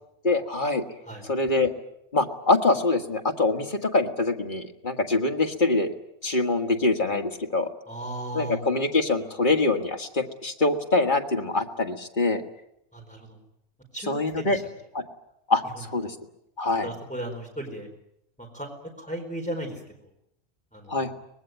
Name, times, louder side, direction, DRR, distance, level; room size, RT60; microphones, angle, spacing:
voice 1, 0.2-0.8 1.2-1.7 2.1-5.9 6.2-7.7 8.3-12.4 14.1-14.6 14.9-15.0 15.5-16.2 16.6-16.9 20.9-21.1, left 2 dB, 45° left, 4 dB, 2.0 m, -24 dB
voice 2, 7.9-8.6 12.9-13.4 13.9-14.6 16.8-17.9 18.4-18.7 19.0-19.8 20.7-21.1, right 1 dB, 5° left, 1 dB, 4.3 m, -35 dB
24.5 x 20.0 x 9.2 m, 0.78 s
omnidirectional pair, 1.2 m